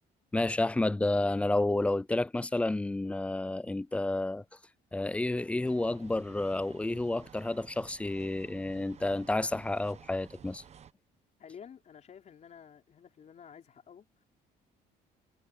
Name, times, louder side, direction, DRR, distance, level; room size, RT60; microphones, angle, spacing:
voice 1, 0.3-4.4 4.9-10.6, left 2 dB, 5° left, 0.3 m, -30 dB
sound 1, 5.7-10.9, right 8 dB, 40° right, 1.0 m, -54 dB
voice 2, 11.4-14.2, left 7 dB, 45° left, 4.6 m, -51 dB
cardioid pair, 110°, 17 cm